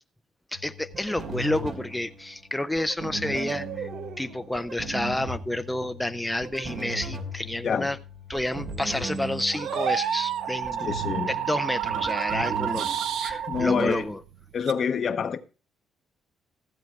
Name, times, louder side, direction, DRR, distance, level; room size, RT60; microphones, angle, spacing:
voice 1, 0.5-3.9 4.2-8.0 8.3-10.9 11.3-12.9 13.2-14.2, left 1 dB, 5° left, 0.6 m, -30 dB
sound 1, 0.5-14.0, right 2 dB, 60° right, 2.6 m, -37 dB
sound 2, 3.2-4.5 8.8-14.7, right 9 dB, 80° right, 1.0 m, -30 dB
voice 2, 10.8-11.3 13.5-14.0 14.5-15.4, left 6 dB, 55° left, 1.0 m, -26 dB
15.0 x 7.8 x 4.6 m
cardioid pair, 90°, 0 cm